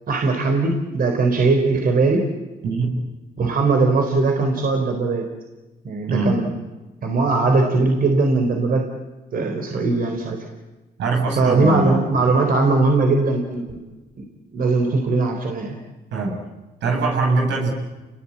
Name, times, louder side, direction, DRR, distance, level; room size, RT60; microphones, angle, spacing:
voice 1, 0.1-2.3 3.4-5.3 5.8-6.5 7.0-8.9 9.3-10.4 11.4-13.8 14.2-14.3 14.5-15.8, right 3 dB, 55° right, 3 dB, 4.0 m, -19 dB
voice 2, 2.6-2.9 6.1-6.4 11.0-12.1 16.1-16.4 16.8-17.7, right 3 dB, 80° right, 2 dB, 7.4 m, -22 dB
29.5 x 20.5 x 8.7 m, 1.1 s
cardioid pair, 85°, 18 cm